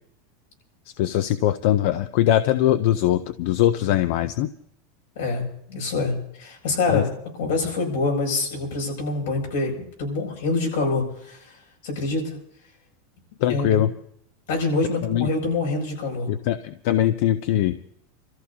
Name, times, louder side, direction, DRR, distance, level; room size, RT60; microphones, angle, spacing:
voice 1, 1.0-4.5 6.9-7.0 13.4-13.9 15.0-15.3 16.3-17.8, left 12 dB, 55° left, 12 dB, 0.5 m, -21 dB
voice 2, 5.1-7.1 7.4-11.6 11.8-12.4 13.5-13.8 14.5-16.3, left 3 dB, 80° left, 0 dB, 6.2 m, -26 dB
29.5 x 14.0 x 2.8 m, 0.68 s
supercardioid pair, 165°, 0 cm